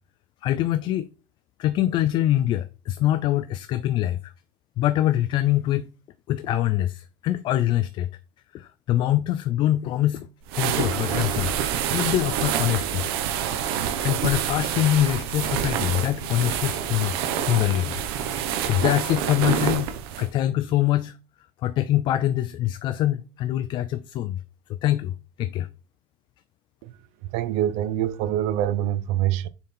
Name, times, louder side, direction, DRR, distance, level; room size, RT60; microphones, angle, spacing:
voice 1, 0.4-1.1 1.6-4.3 4.8-5.9 6.3-8.1 8.5-10.3 10.5-11.6 11.9-13.0 14.0-17.2 17.5-19.9 20.2-21.1 21.6-24.4 24.8-25.7, left 13 dB, 40° left, 0.4 m, -24 dB
sound 1, 10.5-20.3, right 9 dB, 80° right, 1.0 m, -27 dB
voice 2, 27.3-29.5, right 12 dB, 60° right, 0.6 m, -25 dB
6.8 x 3.9 x 4.3 m
cardioid pair, 150°, 13 cm